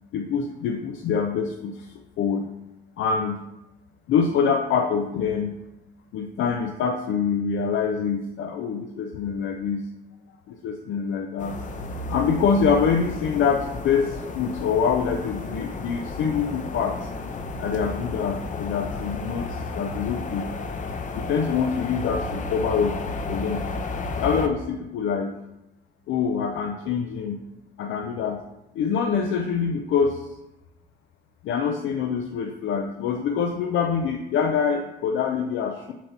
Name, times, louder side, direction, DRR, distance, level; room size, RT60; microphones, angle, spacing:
voice 1, 0.1-2.5 3.0-3.4 4.1-5.5 6.1-9.9 10.5-11.6 12.1-17.1 17.6-20.5 21.1-23.0 23.3-23.7 24.2-25.4 26.1-27.5 27.8-28.4 28.7-30.4 31.4-35.9, left 6 dB, 80° left, 4 dB, 0.5 m, -25 dB
sound 1, 11.4-24.5, left 3 dB, 40° left, 0.7 m, -32 dB
7.0 x 2.9 x 5.7 m, 0.93 s
cardioid pair, 90°, 20 cm